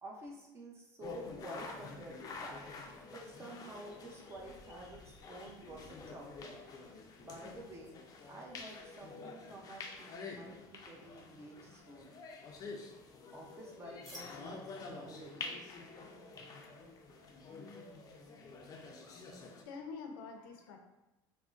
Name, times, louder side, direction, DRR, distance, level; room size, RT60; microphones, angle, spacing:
voice 1, 0.0-2.6 3.1-6.5 7.2-8.0 8.3-12.2 13.3-15.5, right 1 dB, 25° right, -1 dB, 0.7 m, -50 dB
sound 1, 1.0-19.6, left 4 dB, 35° left, 0.4 m, -48 dB
sound 2, 14.0-19.6, left 1 dB, ahead, 1.1 m, -59 dB
voice 2, 19.2-20.8, left 5 dB, 90° left, 4 dB, 0.5 m, -47 dB
3.5 x 2.1 x 2.5 m, 0.96 s
supercardioid pair, 110°, 12 cm